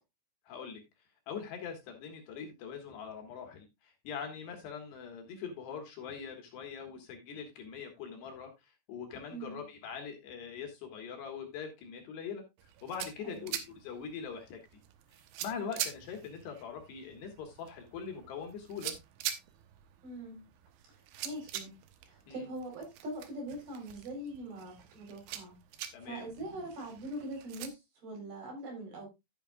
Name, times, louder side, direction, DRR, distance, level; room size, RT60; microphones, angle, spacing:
voice 1, 0.5-0.8 1.3-8.5 8.9-12.4 12.8-14.6 15.4-18.9 22.3-22.5 25.9-26.3, left 6 dB, 65° left, 4 dB, 3.5 m, -42 dB
voice 2, 9.3-9.6 13.2-13.5 20.0-20.4 21.0-21.8 22.1-25.6 26.0-29.1, right 1 dB, 50° right, 2 dB, 5.7 m, -42 dB
sound 1, 12.6-27.7, right 11 dB, 80° right, 3.4 m, -45 dB
12.0 x 8.9 x 2.4 m, 0.22 s
omnidirectional pair, 5.6 m